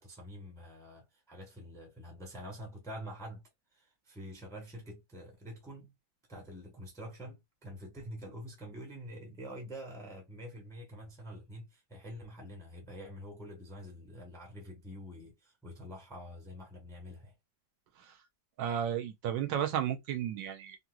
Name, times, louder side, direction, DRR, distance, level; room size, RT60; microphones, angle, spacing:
voice 1, 0.0-3.4 3.7-5.9 6.3-17.4, equal, 5° left, 0.7 m, -46 dB
voice 2, 18.6-20.8, right 9 dB, 85° right, 1.4 m, -33 dB
3.7 x 2.8 x 2.2 m
omnidirectional pair, 2.0 m